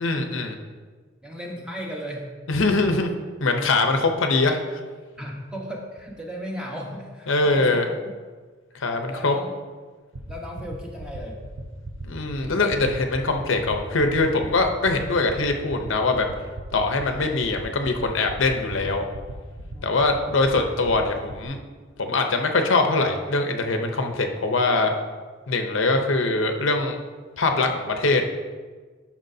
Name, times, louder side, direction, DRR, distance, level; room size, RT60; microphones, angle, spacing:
voice 1, 0.0-0.5 2.5-3.1 3.4-4.6 7.3-7.8 8.7-9.4 12.0-16.3 16.7-19.0 19.8-21.6 22.0-24.9 25.5-27.0 27.4-28.3, left 3 dB, 65° left, 4 dB, 0.7 m, -22 dB
voice 2, 1.2-2.4 5.2-7.9 8.7-8.8 9.1-9.6 10.3-11.4 19.6-19.9, equal, 5° right, -1 dB, 1.0 m, -36 dB
sound 1, 10.1-21.4, right 3 dB, 85° right, 0.9 m, -36 dB
11.5 x 6.0 x 2.7 m, 1.4 s
head